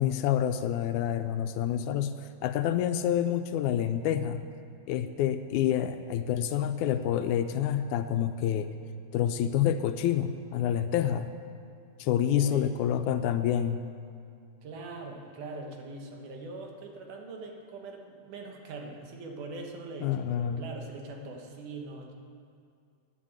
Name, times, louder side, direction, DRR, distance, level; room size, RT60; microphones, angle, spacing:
voice 1, 0.0-4.4 4.9-8.7 9.1-11.3 12.0-13.9 20.0-20.7, left 10 dB, 80° left, 9 dB, 1.9 m, -28 dB
voice 2, 12.3-12.8 14.6-22.1, right 3 dB, 90° right, 2 dB, 2.9 m, -42 dB
11.5 x 9.8 x 8.8 m, 2.3 s
omnidirectional pair, 3.5 m